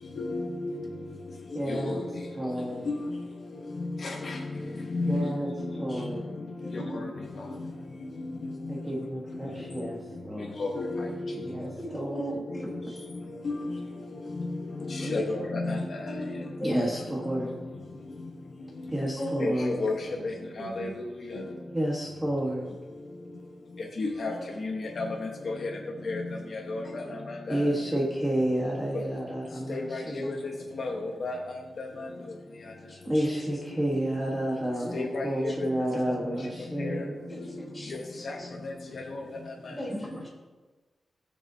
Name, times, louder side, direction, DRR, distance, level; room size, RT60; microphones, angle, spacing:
voice 1, 0.0-7.7 8.2-10.1 10.4-17.9 18.2-18.3 18.8-21.7 22.9-23.0 23.8-28.0 28.9-29.0 29.7-32.2 32.6-32.7 33.5-33.9 34.6-35.7 36.0-37.0 37.3-39.8, left 2 dB, 50° left, 0 dB, 1.1 m, -35 dB
voice 2, 1.5-2.0 2.4-2.8 5.1-5.5 5.8-6.2 8.7-10.6 11.5-11.7 11.9-12.3 16.6-17.5 18.9-19.7 21.7-22.6 27.5-30.3 33.0-37.1, right 1 dB, 10° right, -3 dB, 1.4 m, -30 dB
voice 3, 6.6-7.0 11.8-13.1 15.0-15.4 15.8-17.1 19.2-19.7 20.6-20.9 21.3-21.4 24.3-24.5 26.8-27.1 27.5-27.6 30.2-30.5 32.9-33.5 35.5-35.6 37.3-38.5 39.7-40.3, right 1 dB, 15° left, -5 dB, 3.4 m, -40 dB
19.5 x 6.7 x 2.8 m, 1.3 s
wide cardioid pair, 170°, 0 cm